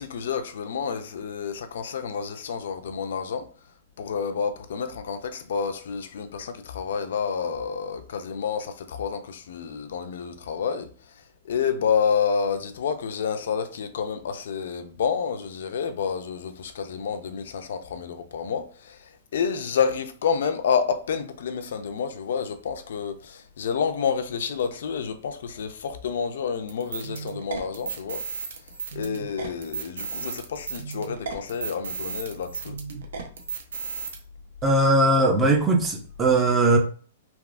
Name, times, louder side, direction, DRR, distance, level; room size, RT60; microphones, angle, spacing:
voice 1, 0.0-3.5 4.0-28.2 28.9-32.8, left 6 dB, 65° left, 0.4 m, -29 dB
sound 1, 26.7-34.2, right 6 dB, 75° right, 0.7 m, -34 dB
voice 2, 34.6-36.8, right 2 dB, 15° right, 0.4 m, -19 dB
3.4 x 2.3 x 2.4 m
hypercardioid pair, 175°, 0 cm